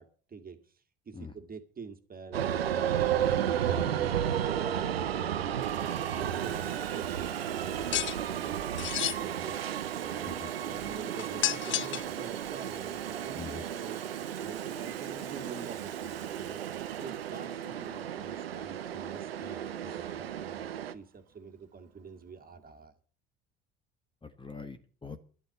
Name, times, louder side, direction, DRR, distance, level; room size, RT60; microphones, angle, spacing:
voice 1, 0.0-3.1 3.4-5.0 5.9-8.0 8.3-16.7 17.0-22.9, right 5 dB, 30° right, 6 dB, 2.1 m, -47 dB
sound 1, 2.3-20.9, right 10 dB, 90° right, 0.7 m, -33 dB
Water tap faucet / Sink (filling or washing), 3.5-3.6 4.5-4.9 5.2-22.8, right 11 dB, 55° right, 1.7 m, -49 dB
sound 2, 7.9-8.2 8.8-9.2 11.2-12.1, left 13 dB, 40° left, 0.6 m, -30 dB
voice 2, 24.2-25.2, left 4 dB, 15° left, 9 dB, 1.3 m, -43 dB
11.5 x 8.3 x 7.9 m, 0.41 s
hypercardioid pair, 65°, 29 cm